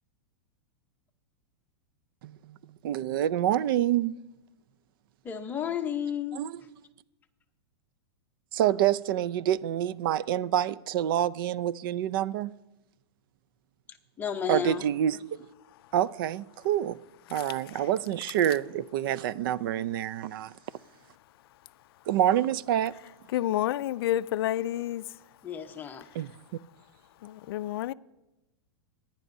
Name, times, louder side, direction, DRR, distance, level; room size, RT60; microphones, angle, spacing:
voice 1, 2.2-4.2 6.3-6.6 8.5-12.5 14.5-15.4 15.9-17.0 17.3-20.5 22.1-22.9 26.1-26.3, right 11 dB, 55° right, 0.4 m, -27 dB
voice 2, 5.2-6.4 14.2-14.8 25.4-26.1, left 8 dB, 15° left, 0.8 m, -32 dB
voice 3, 23.3-25.0 27.2-27.9, left 13 dB, 65° left, 0.4 m, -29 dB
26.0 x 10.5 x 2.7 m
supercardioid pair, 160°, 14 cm